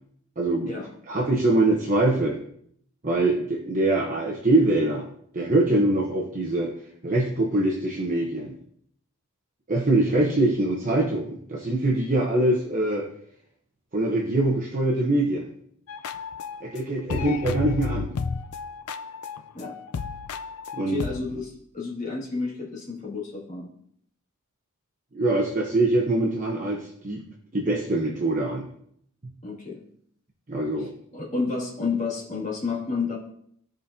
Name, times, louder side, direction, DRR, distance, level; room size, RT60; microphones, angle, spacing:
voice 1, 0.4-0.7 1.1-2.4 3.0-5.1 5.3-6.7 7.0-8.5 9.7-13.1 13.9-15.5 16.6-18.1 20.8-21.0 25.1-27.2 27.5-28.7 30.5-30.9, right 2 dB, 35° right, -2 dB, 1.0 m, -23 dB
sound 1, 15.9-16.8 17.1-21.5, left 5 dB, 85° left, 0.5 m, -33 dB
voice 2, 20.8-23.7 29.4-29.8 30.8-33.2, left 4 dB, 35° left, -5 dB, 2.2 m, -31 dB
14.0 x 5.2 x 2.8 m, 0.66 s
head